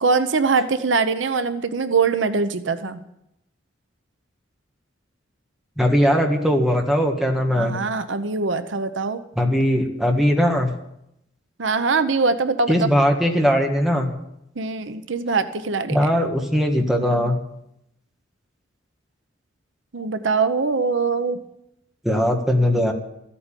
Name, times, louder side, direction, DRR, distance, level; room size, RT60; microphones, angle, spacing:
voice 1, 0.0-3.0 7.6-9.2 11.6-12.8 14.6-16.1 19.9-21.4, right 4 dB, 80° right, 10 dB, 0.8 m, -22 dB
voice 2, 5.8-7.8 9.4-10.7 12.7-14.1 15.9-17.4 22.0-22.9, equal, ahead, 1 dB, 1.6 m, -19 dB
14.5 x 8.7 x 9.0 m, 0.82 s
head